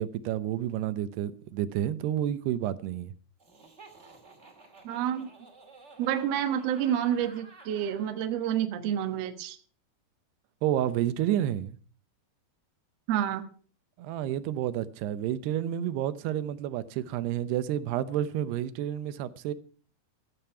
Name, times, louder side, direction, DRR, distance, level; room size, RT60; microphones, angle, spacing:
voice 1, 0.0-3.1 10.6-11.8 14.0-19.5, right 11 dB, 85° right, 2.9 m, -30 dB
Laughter, 3.4-8.2, right 3 dB, 20° right, 2.3 m, -53 dB
voice 2, 4.8-5.3 6.0-9.6 13.1-13.4, right 10 dB, 65° right, 1.7 m, -29 dB
14.5 x 8.7 x 5.8 m
omnidirectional pair, 4.6 m